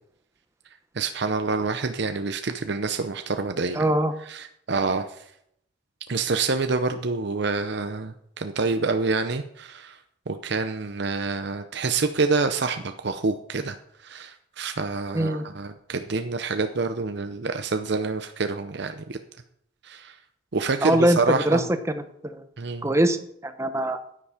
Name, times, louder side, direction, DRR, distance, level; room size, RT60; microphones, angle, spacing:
voice 1, 0.9-3.9 4.3-5.2 6.1-10.0 10.3-13.8 14.0-19.2 19.8-20.2 20.5-21.6 22.6-22.9, right 4 dB, 60° right, 8 dB, 0.7 m, -27 dB
voice 2, 3.7-4.1 15.1-15.4 20.8-22.4 22.8-23.2 23.4-24.0, right 1 dB, 15° right, 9 dB, 0.9 m, -22 dB
10.0 x 9.9 x 5.0 m, 0.70 s
head